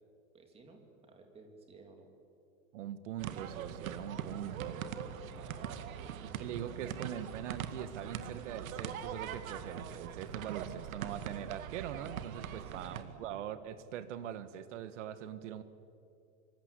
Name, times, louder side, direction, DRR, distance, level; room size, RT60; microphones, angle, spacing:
voice 1, 0.3-2.1 5.3-6.5 12.5-13.3, right 3 dB, 15° right, 4 dB, 2.7 m, -56 dB
voice 2, 2.7-4.9 6.4-15.6, right 10 dB, 60° right, 13 dB, 1.7 m, -42 dB
sound 1, 3.2-13.0, right 8 dB, 75° right, 2.1 m, -42 dB
25.5 x 24.5 x 8.4 m, 2.6 s
supercardioid pair, 175°, 41 cm